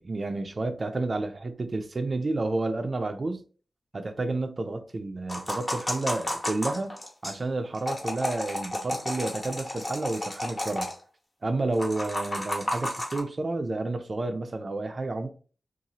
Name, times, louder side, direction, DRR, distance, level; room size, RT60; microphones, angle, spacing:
voice 1, 0.0-3.4 3.9-6.9 7.2-10.9 11.4-15.3, right 2 dB, 40° right, 0.3 m, -30 dB
sound 1, 5.3-7.4 7.7-10.9 11.7-13.2, left 1 dB, 30° left, 0.9 m, -32 dB
2.7 x 2.3 x 2.8 m
wide cardioid pair, 85°, 0 cm